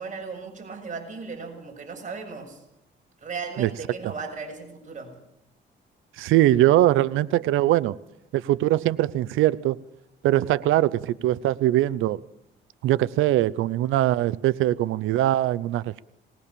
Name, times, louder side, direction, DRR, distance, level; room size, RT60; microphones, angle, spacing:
voice 1, 0.0-2.6 3.2-5.2, right 4 dB, 40° right, 6.9 m, -36 dB
voice 2, 6.2-8.0 8.3-9.8 10.2-12.2 12.8-16.0, right 14 dB, 90° right, 0.7 m, -21 dB
20.0 x 19.0 x 6.9 m
cardioid pair, 90°, 20 cm